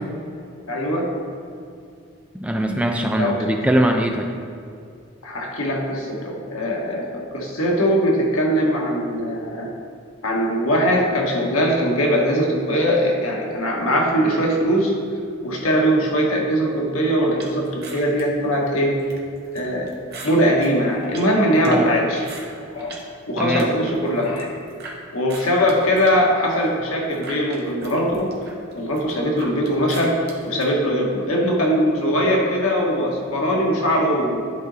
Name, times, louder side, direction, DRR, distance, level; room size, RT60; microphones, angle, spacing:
voice 1, 0.7-1.1 3.2-3.4 5.2-9.7 10.2-14.9 15.4-19.0 19.5-19.9 20.2-22.2 22.7-22.9 23.3-24.5 25.1-28.3 28.7-30.1 30.4-34.4, equal, 85° left, -1 dB, 1.2 m, -21 dB
voice 2, 2.3-4.3 21.7-21.9 23.4-23.7, right 1 dB, 5° right, 3 dB, 0.3 m, -21 dB
sound 1, 17.4-23.1 23.4-25.0 25.3-30.7, right 3 dB, 50° right, 1.1 m, -41 dB
10.0 x 3.9 x 4.0 m, 2.4 s
head